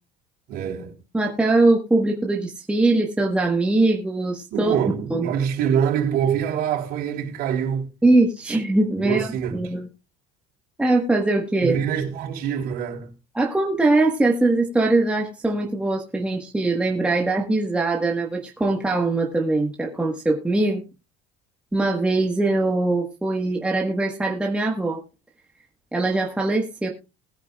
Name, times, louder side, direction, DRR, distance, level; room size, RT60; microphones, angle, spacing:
voice 1, 0.5-1.0 4.5-7.9 9.0-9.7 11.6-13.1, right 8 dB, 60° right, 3.7 m, -25 dB
voice 2, 1.1-4.8 5.1-5.3 8.0-9.9 10.8-11.8 13.3-20.8 21.7-25.0 25.9-26.9, right 2 dB, 5° right, 1.3 m, -21 dB
20.5 x 9.6 x 2.3 m
cardioid pair, 160°, 18 cm